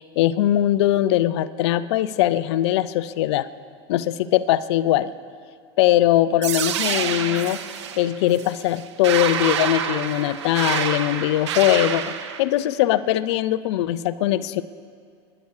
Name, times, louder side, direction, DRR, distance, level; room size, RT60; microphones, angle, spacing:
voice 1, 0.0-3.5 3.9-5.1 5.8-7.6 8.0-12.1 12.4-14.6, left 13 dB, 75° left, 15 dB, 0.6 m, -21 dB
sound 1, 6.4-12.4, right 9 dB, 85° right, 0.9 m, -27 dB
25.0 x 11.0 x 4.8 m, 2.1 s
hypercardioid pair, 105°, 14 cm